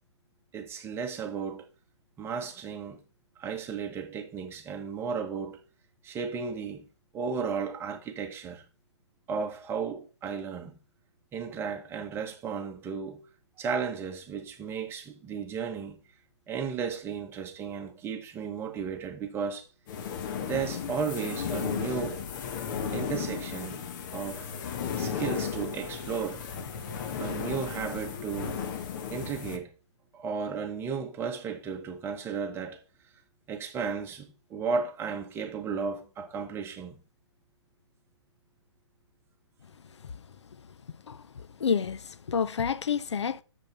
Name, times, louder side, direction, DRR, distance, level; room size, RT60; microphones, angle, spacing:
voice 1, 0.5-1.6 2.2-3.0 3.4-5.6 6.0-6.8 7.1-8.6 9.3-10.7 11.3-13.2 13.6-15.9 16.5-19.7 20.4-22.2 22.9-23.8 24.1-24.5 25.0-26.5 27.2-28.6 29.1-29.7 30.1-32.8 33.5-37.0, right 6 dB, 15° right, 1.2 m, -34 dB
sound 1, 19.9-29.6, left 7 dB, 40° left, 1.2 m, -35 dB
voice 2, 41.1-43.4, left 6 dB, 75° left, 0.5 m, -29 dB
7.3 x 5.3 x 5.1 m
hypercardioid pair, 135°, 15 cm